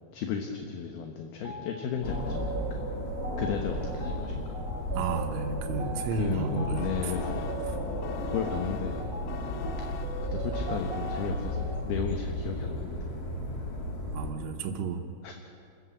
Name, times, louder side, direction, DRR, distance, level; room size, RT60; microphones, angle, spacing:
voice 1, 0.1-2.8 3.4-4.6 5.8-7.6 8.2-9.1 10.3-13.1 13.6-13.7 15.2-15.3, left 6 dB, 70° left, 3 dB, 2.7 m, -34 dB
sound 1, 1.4-1.6 2.1-11.8, right 5 dB, 60° right, 2.2 m, -40 dB
sound 2, 2.0-14.3, left 1 dB, 35° left, 1.5 m, -34 dB
voice 2, 4.9-7.1 7.7-7.8 14.1-15.1, right 4 dB, 80° right, 2 dB, 3.5 m, -32 dB
sound 3, 6.8-12.0, left 9 dB, 85° left, 2.1 m, -45 dB
27.0 x 14.5 x 8.3 m, 2.6 s
omnidirectional pair, 5.5 m